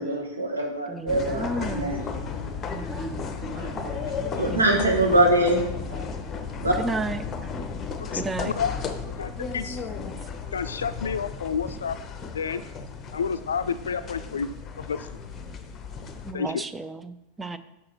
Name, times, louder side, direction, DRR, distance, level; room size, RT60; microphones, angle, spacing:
voice 1, 0.0-2.0 4.3-5.6 6.6-6.7, right 1 dB, 75° right, 1 dB, 1.4 m, -23 dB
voice 2, 0.9-2.0 2.6-3.3 4.5-4.6 6.8-7.2 8.1-8.5 16.2-17.6, right 2 dB, 10° right, 11 dB, 0.4 m, -33 dB
sound 1, 1.1-16.3, left 5 dB, 25° left, 0.7 m, -34 dB
voice 3, 2.1-2.6 3.1-4.5 5.9-6.4 7.0-7.1 12.6-12.9, right 2 dB, 45° right, -4 dB, 1.8 m, -44 dB
voice 4, 8.0-8.8 9.2-9.8 10.5-12.0 12.3-12.6 13.1-14.5 14.9-15.0 16.3-16.6, left 6 dB, 70° left, 12 dB, 0.4 m, -29 dB
6.3 x 5.7 x 4.3 m, 0.88 s
figure-of-eight pair, 90°, 0 cm